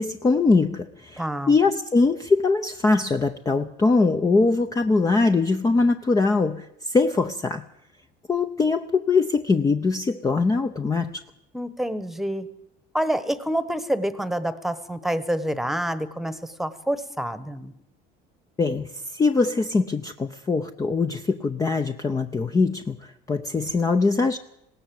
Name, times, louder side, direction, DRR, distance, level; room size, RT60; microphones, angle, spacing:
voice 1, 0.0-1.2 1.5-7.6 8.3-11.2 18.6-23.0 23.3-24.4, left 3 dB, 20° left, 7 dB, 0.7 m, -22 dB
voice 2, 1.2-1.5 11.5-12.5 12.9-17.7, right 1 dB, ahead, 14 dB, 1.2 m, -27 dB
20.0 x 17.0 x 7.8 m, 0.81 s
cardioid pair, 130°, 19 cm